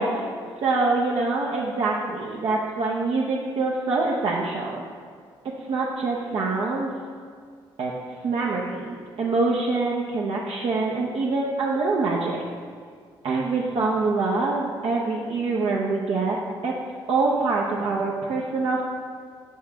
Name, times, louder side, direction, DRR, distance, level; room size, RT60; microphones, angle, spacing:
voice 1, 0.0-4.8 5.7-6.9 7.8-7.9 8.2-12.4 13.2-16.4 16.6-16.7 17.1-18.8, right 3 dB, 65° right, -4 dB, 0.8 m, -25 dB
6.0 x 5.6 x 4.4 m, 2.1 s
supercardioid pair, 65°, 10 cm